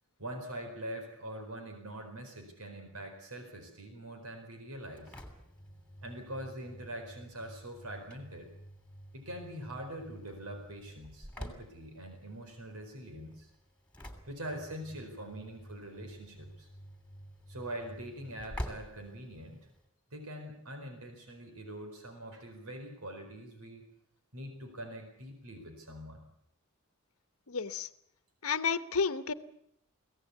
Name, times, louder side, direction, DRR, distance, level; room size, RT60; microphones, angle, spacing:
voice 1, 0.2-5.2 6.0-8.5 9.1-13.5 14.3-16.7 17.5-19.7 20.1-23.8 24.3-26.2, right 1 dB, 90° right, 5 dB, 4.5 m, -43 dB
Engine / Slam, 4.7-19.9, equal, 5° left, 3.0 m, -48 dB
voice 2, 27.5-27.9 28.4-29.3, left 5 dB, 75° left, 13 dB, 1.0 m, -31 dB
23.5 x 17.0 x 8.3 m, 0.74 s
head